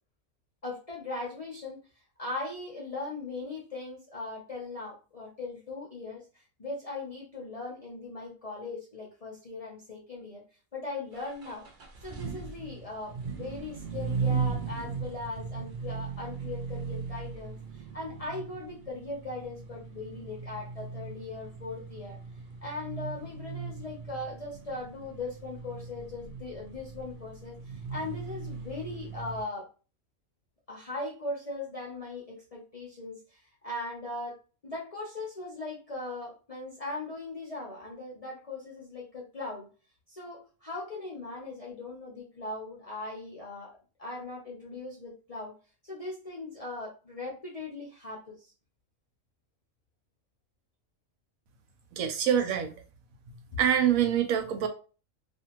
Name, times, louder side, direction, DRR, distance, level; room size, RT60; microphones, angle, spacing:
voice 1, 0.6-1.8 2.2-10.4 10.7-11.7 12.0-22.2 22.6-29.7 30.7-34.4 34.6-39.7 40.1-45.6 45.8-48.5 52.2-52.6 53.5-53.6, left 2 dB, 45° left, 0.5 m, -39 dB
sound 1, 11.1-29.4, right 5 dB, 55° right, 0.5 m, -38 dB
voice 2, 52.0-52.7 53.6-54.7, right 9 dB, 85° right, 1.0 m, -25 dB
2.6 x 2.5 x 2.9 m
omnidirectional pair, 1.4 m